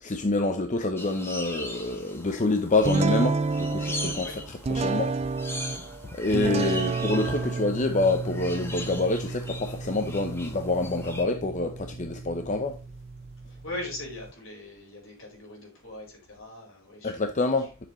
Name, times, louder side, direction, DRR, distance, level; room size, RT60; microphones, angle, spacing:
voice 1, 0.0-4.3 4.7-5.1 6.1-12.8 17.0-17.9, left 2 dB, 35° left, 0.7 m, -27 dB
sound 1, 1.0-11.2, left 1 dB, 10° left, 1.4 m, -40 dB
sound 2, 2.8-14.3, right 4 dB, 30° right, 0.4 m, -31 dB
voice 2, 6.6-6.9 13.5-17.1 17.6-17.7, left 2 dB, 70° left, 4.7 m, -40 dB
10.5 x 6.9 x 3.2 m
head